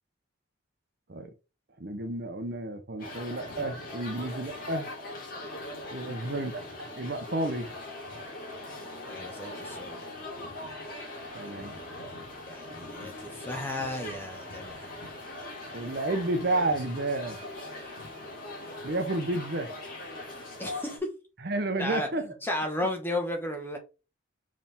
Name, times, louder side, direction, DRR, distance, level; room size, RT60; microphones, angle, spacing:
voice 1, 1.8-4.9 5.9-7.7 11.3-11.8 15.7-17.4 18.8-19.7 21.4-22.3, right 2 dB, 50° right, 0.8 m, -31 dB
sound 1, 3.0-21.0, left 2 dB, 45° left, 2.8 m, -41 dB
voice 2, 9.0-10.1 12.5-14.9 20.6-21.0 21.8-23.8, left 1 dB, 10° left, 1.4 m, -34 dB
5.7 x 4.9 x 3.5 m
head